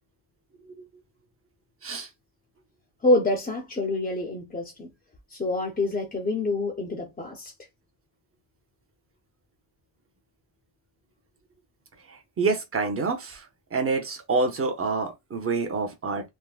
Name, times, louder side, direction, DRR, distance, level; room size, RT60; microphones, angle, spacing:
voice 1, 3.0-4.9 5.3-7.5, left 2 dB, 20° left, 0.5 m, -26 dB
voice 2, 12.1-13.5 13.7-16.3, right 4 dB, 30° right, 0.7 m, -27 dB
3.4 x 2.1 x 2.3 m
wide cardioid pair, 150°, 46 cm